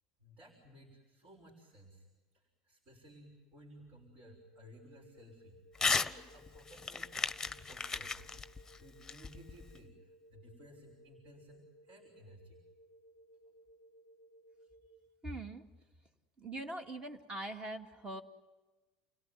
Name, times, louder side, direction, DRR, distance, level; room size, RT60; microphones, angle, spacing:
voice 1, 0.2-2.1 2.3-8.1 8.8-12.6, equal, 55° right, -1 dB, 5.9 m, -58 dB
sound 1, 4.2-14.9, equal, 80° right, 4.5 m, -61 dB
Crumpling crinkling / Tearing, 5.7-6.1 6.5-9.8, left 4 dB, 15° left, 1.2 m, -35 dB
voice 2, 15.2-15.6 16.4-18.2, right 1 dB, 25° right, 6 dB, 2.3 m, -42 dB
30.0 x 17.5 x 9.4 m, 1.2 s
hypercardioid pair, 85°, 3 cm